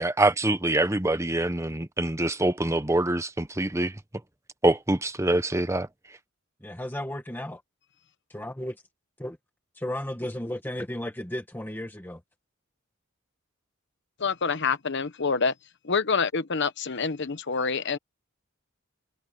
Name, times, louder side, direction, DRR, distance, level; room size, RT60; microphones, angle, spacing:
voice 1, 0.0-3.9 4.6-5.9, right 2 dB, 15° right, 1.0 m, -25 dB
voice 2, 6.6-7.6 8.3-8.8 9.2-9.4 9.7-12.2, left 1 dB, 10° left, 1.2 m, -34 dB
voice 3, 14.2-15.5 15.8-18.0, left 5 dB, 55° left, 1.1 m, -26 dB
head